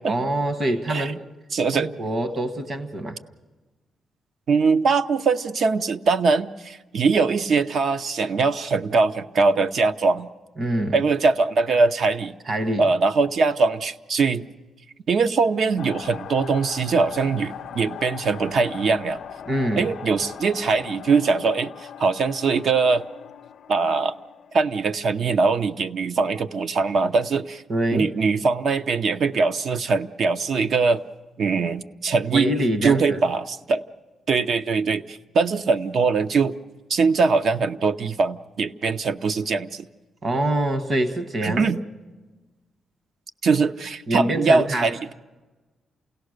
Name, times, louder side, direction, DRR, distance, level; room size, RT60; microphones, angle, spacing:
voice 1, 0.1-1.3 1.7-3.2 10.6-11.0 12.5-12.9 19.5-19.9 27.7-28.1 32.3-33.2 40.2-41.7 44.1-44.9, right 1 dB, 35° right, 9 dB, 1.4 m, -25 dB
voice 2, 1.5-1.9 4.5-10.3 10.9-12.4 12.8-14.5 15.1-19.2 19.8-21.7 22.0-23.0 23.7-24.1 24.5-27.6 27.9-31.0 31.4-32.5 32.8-33.8 34.3-36.5 36.9-39.9 41.4-41.8 43.4-45.1, right 4 dB, 55° right, 11 dB, 0.8 m, -22 dB
sound 1, 15.8-24.7, left 9 dB, 60° left, 0.6 m, -39 dB
28.5 x 17.5 x 6.6 m, 1.2 s
cardioid pair, 125°, 0 cm